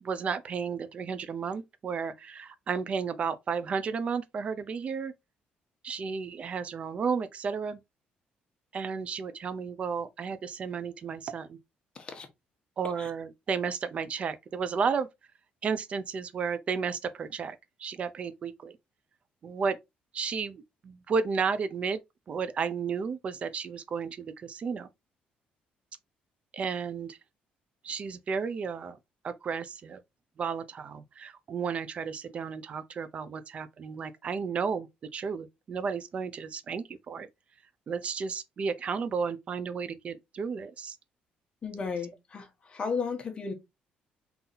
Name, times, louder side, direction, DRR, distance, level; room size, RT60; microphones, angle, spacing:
voice 1, 0.0-5.1 5.8-7.8 8.7-11.6 12.8-15.1 15.6-18.8 19.4-19.8 20.1-22.0 22.3-24.9 26.5-27.2 27.8-29.0 29.2-30.0 30.4-37.3 37.9-41.0, right 5 dB, 40° right, 0.5 m, -33 dB
voice 2, 11.9-12.3 13.0-13.1 41.6-43.5, left 5 dB, 30° left, 1.1 m, -34 dB
3.9 x 2.8 x 3.9 m
cardioid pair, 135°, 3 cm